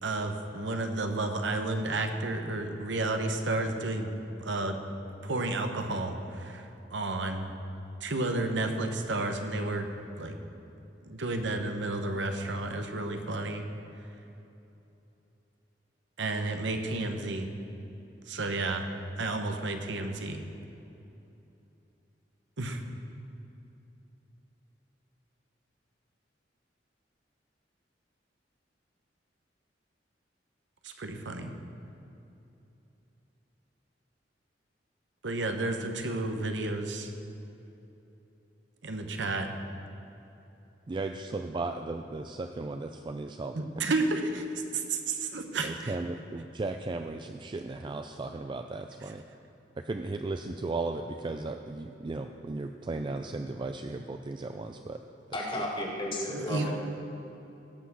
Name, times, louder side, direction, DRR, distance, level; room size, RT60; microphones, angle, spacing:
voice 1, 0.0-4.1 4.4-4.8 5.2-6.7 6.9-7.5 8.0-9.9 10.2-10.4 11.1-13.6 16.2-17.5 18.3-18.9 19.2-20.4 22.6-22.8 30.8-31.5 35.2-37.1 38.8-39.5 43.5-44.5 44.7-45.9 56.3-56.7, right 2 dB, 80° right, 6 dB, 1.0 m, -31 dB
voice 2, 40.9-43.8 45.6-49.2 49.8-55.0 55.5-55.6, right 3 dB, 25° right, 6 dB, 0.4 m, -36 dB
voice 3, 55.3-56.7, left 1 dB, 30° left, -2 dB, 2.0 m, -33 dB
17.0 x 5.8 x 6.2 m, 2.9 s
head